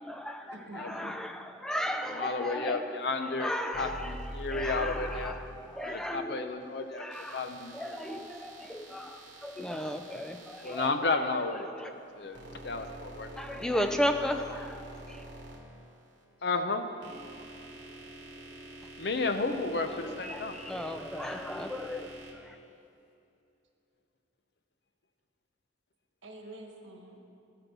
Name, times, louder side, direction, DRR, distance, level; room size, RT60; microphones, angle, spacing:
voice 1, 0.0-2.8 3.2-4.2 4.5-6.5 6.9-7.5 7.7-11.1 11.8-11.9 13.4-15.2 20.0-22.1 22.5-22.6, equal, 5° left, 5 dB, 0.4 m, -35 dB
voice 2, 0.5-1.2 26.2-27.2, right 1 dB, 90° right, 2 dB, 1.4 m, -47 dB
voice 3, 2.2-5.3 5.8-7.0 7.3-8.0 10.6-11.7 12.2-13.7 16.4-16.8 19.0-20.5, left 3 dB, 60° left, 7 dB, 0.7 m, -32 dB
sound 1, 3.7-6.1 7.1-10.9 11.9-16.2 16.8-22.3, right 1 dB, 75° right, 1.6 m, -46 dB
13.5 x 5.2 x 6.2 m, 2.7 s
head